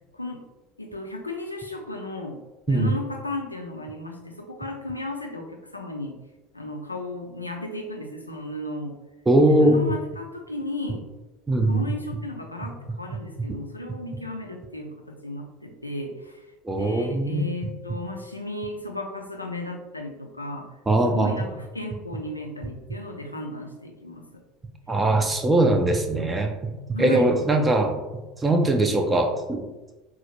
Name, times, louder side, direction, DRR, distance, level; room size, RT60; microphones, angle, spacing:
voice 1, 0.1-0.5 0.8-6.2 6.5-9.0 9.5-11.0 11.6-20.7 21.0-24.4 26.9-27.3, left 1 dB, 90° left, 2 dB, 0.4 m, -35 dB
voice 2, 9.3-9.8 11.5-11.8 16.7-17.5 20.9-21.3 24.9-27.9 28.4-29.6, right 1 dB, 15° right, 3 dB, 0.4 m, -21 dB
4.0 x 2.0 x 2.9 m, 1.1 s
figure-of-eight pair, 70°, 0 cm